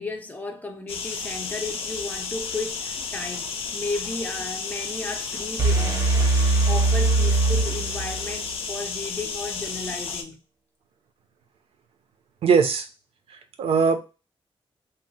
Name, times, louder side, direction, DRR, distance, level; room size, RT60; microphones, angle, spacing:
voice 1, 0.0-10.4, left 3 dB, 15° left, 0.5 m, -34 dB
sound 1, 0.9-10.2, left 5 dB, 75° left, 0.5 m, -32 dB
sound 2, 5.6-8.5, right 3 dB, 35° right, 0.6 m, -21 dB
voice 2, 12.4-12.9 13.3-14.0, right 5 dB, 80° right, 0.5 m, -21 dB
2.8 x 2.0 x 3.9 m
wide cardioid pair, 165°, 10 cm